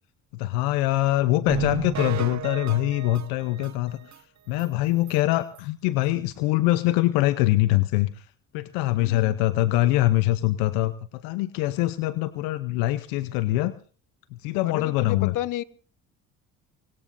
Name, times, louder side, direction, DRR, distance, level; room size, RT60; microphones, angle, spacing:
voice 1, 0.3-4.0 4.5-8.3 8.5-13.7 14.3-15.3, left 16 dB, 80° left, 13 dB, 0.8 m, -23 dB
sound 1, 1.5-4.2 4.6-4.7 5.1-5.2 5.6-5.7, right 10 dB, 50° right, 1.3 m, -33 dB
voice 2, 9.0-9.4 14.6-15.6, left 14 dB, 60° left, 14 dB, 1.3 m, -32 dB
25.5 x 21.0 x 2.6 m, 0.41 s
supercardioid pair, 70°, 35 cm